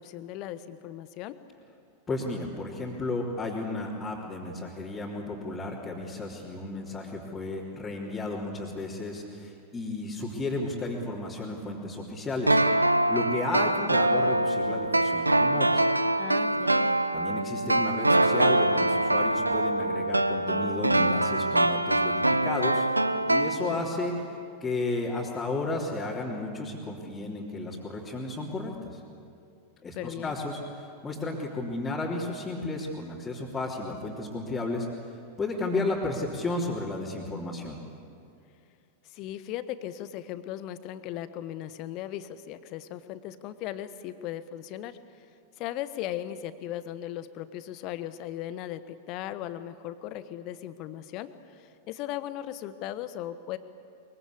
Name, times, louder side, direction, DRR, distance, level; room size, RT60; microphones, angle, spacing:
voice 1, 0.0-1.4 16.2-16.9 29.9-30.4 39.0-45.2 45.6-53.6, left 12 dB, 40° left, 13 dB, 1.2 m, -37 dB
voice 2, 2.1-12.6 13.1-15.8 17.1-22.9 23.3-29.0 29.8-34.9 35.4-37.8, left 2 dB, 15° left, -6 dB, 3.3 m, -33 dB
sound 1, 12.5-24.1 24.4-24.5, right 1 dB, 85° right, 0.7 m, -24 dB
23.0 x 23.0 x 8.5 m, 2.5 s
figure-of-eight pair, 90°, 0 cm